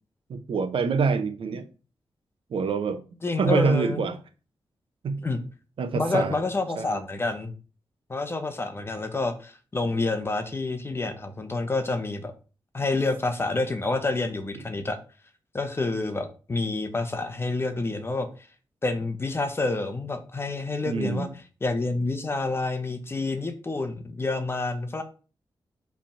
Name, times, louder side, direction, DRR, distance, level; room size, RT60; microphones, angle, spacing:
voice 1, 0.3-1.6 2.5-3.0 3.4-4.2 5.0-5.2 5.8-6.4 6.8-7.0 20.9-21.3, right 5 dB, 75° right, 0.8 m, -26 dB
voice 2, 3.2-4.0 5.2-5.4 5.9-7.5 8.1-12.3 12.7-15.0 15.5-18.3 18.8-21.3 21.6-25.0, left 3 dB, 25° left, 0.9 m, -28 dB
5.1 x 3.5 x 5.6 m
wide cardioid pair, 125°, 9 cm